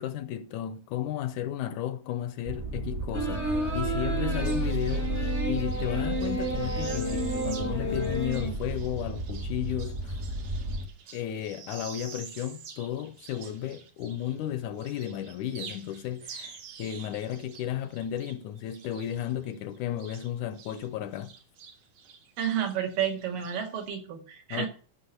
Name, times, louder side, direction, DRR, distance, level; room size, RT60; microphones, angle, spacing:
voice 1, 0.0-10.2 11.1-21.3 24.5-24.7, left 11 dB, 80° left, 1.8 m, -34 dB
sound 1, 2.4-10.9, right 2 dB, 55° right, 0.8 m, -33 dB
sound 2, 3.1-8.5, right 1 dB, 20° left, 0.4 m, -32 dB
sound 3, 4.3-14.5 14.8-20.9 21.1-23.9, right 6 dB, 70° right, 3.2 m, -48 dB
voice 2, 22.4-24.7, right 9 dB, 85° right, 3.7 m, -30 dB
11.5 x 6.1 x 6.6 m
omnidirectional pair, 3.8 m